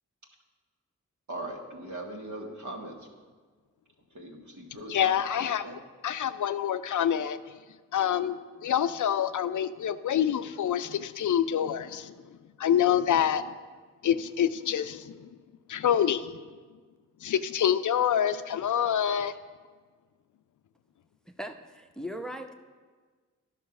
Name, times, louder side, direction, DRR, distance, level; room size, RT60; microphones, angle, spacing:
voice 1, 1.3-3.1 4.1-5.7, right 1 dB, 65° right, 1 dB, 1.7 m, -40 dB
voice 2, 4.9-5.7 6.0-7.4 7.9-12.1 12.6-13.5 14.0-15.3 15.7-16.4 17.2-19.3, left 9 dB, 70° left, 12 dB, 0.5 m, -26 dB
voice 3, 21.4-22.5, equal, ahead, 6 dB, 0.8 m, -38 dB
10.5 x 5.7 x 5.9 m, 1.5 s
cardioid pair, 45°, 32 cm